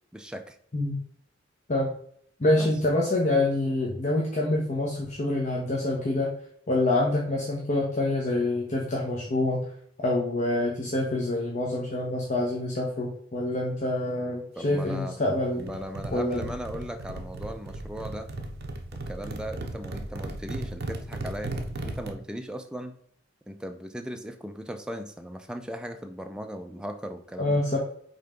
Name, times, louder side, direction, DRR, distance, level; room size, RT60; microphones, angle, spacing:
voice 1, 0.1-0.6 2.6-2.7 14.6-15.2 15.6-18.3 19.1-21.5 21.8-23.0 23.5-27.6, equal, 5° right, 5 dB, 0.4 m, -37 dB
voice 2, 2.4-6.3 6.7-9.6 10.0-15.7 16.1-16.5 27.4-27.8, left 2 dB, 40° left, -2 dB, 1.1 m, -26 dB
sound 1, 15.6-22.1, right 2 dB, 55° right, 0.9 m, -36 dB
5.6 x 3.8 x 5.1 m, 0.64 s
head